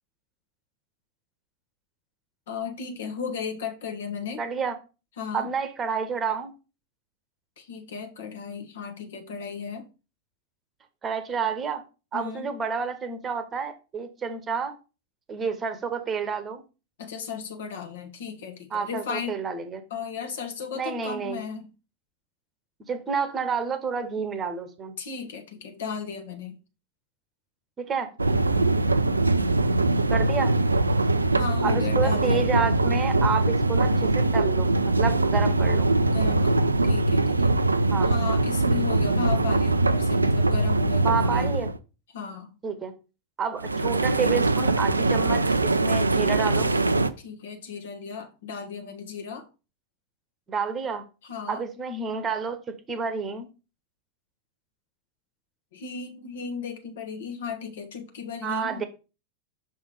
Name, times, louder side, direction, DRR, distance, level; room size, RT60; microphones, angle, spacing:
voice 1, 2.5-4.4 5.2-5.5 7.6-9.9 12.1-12.5 17.0-19.4 19.9-21.7 25.0-26.6 31.3-32.5 36.1-37.5 38.0-41.5 42.1-42.5 47.2-49.5 51.2-51.6 55.7-58.9, left 6 dB, 60° left, 1.2 m, -35 dB
voice 2, 4.4-4.7 5.3-6.5 11.0-11.8 12.1-14.7 15.3-16.6 18.7-19.8 20.7-21.4 22.9-25.0 27.8-28.1 30.1-30.5 31.6-35.9 37.9-38.1 41.0-41.7 42.6-42.9 43.4-46.7 50.5-51.0 51.5-53.5 58.4-58.8, right 6 dB, 20° right, 1.0 m, -29 dB
sound 1, 28.2-41.8 43.6-47.1, right 2 dB, 80° right, 0.4 m, -22 dB
6.1 x 3.5 x 5.0 m
figure-of-eight pair, 90°, 0 cm